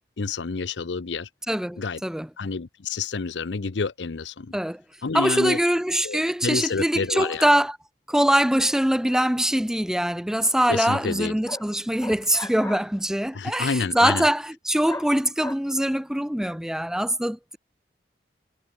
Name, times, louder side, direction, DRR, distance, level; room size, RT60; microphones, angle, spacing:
voice 1, 0.2-1.3 1.8-2.0 2.4-4.6 5.0-5.6 6.0-7.4 10.7-11.3 13.3-14.3, left 4 dB, 85° left, 0.7 m, -28 dB
voice 2, 1.5-2.3 4.5-4.8 5.1-7.8 8.1-17.6, right 1 dB, 5° right, 0.5 m, -23 dB
sound 1, 10.5-10.6 10.9-11.1 11.5-11.7 12.0-12.9 14.9-15.1 15.4-15.5, left 2 dB, 15° left, 2.2 m, -35 dB
head